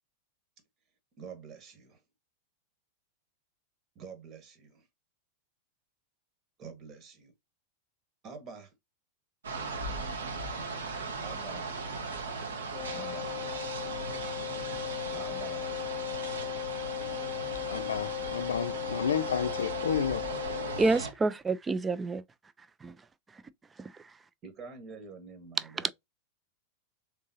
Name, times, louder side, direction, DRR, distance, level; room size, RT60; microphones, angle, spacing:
voice 1, 1.2-2.0 3.9-4.9 6.6-7.3 8.2-8.7 11.2-11.7 12.9-13.4 15.1-15.7 24.4-25.9, right 5 dB, 30° right, 1.3 m, -46 dB
sound 1, 9.4-21.1, right 3 dB, 70° right, 1.1 m, -38 dB
Wind instrument woodwind instrument, 12.7-20.9, left 17 dB, 30° left, 1.0 m, -37 dB
voice 2, 17.5-20.3, left 7 dB, 65° left, 0.4 m, -31 dB
voice 3, 20.8-22.2 22.8-23.0 23.3-23.4 23.8-24.1 25.8-25.9, right 3 dB, 15° right, 0.4 m, -29 dB
3.7 x 3.6 x 2.7 m
figure-of-eight pair, 90°, 0 cm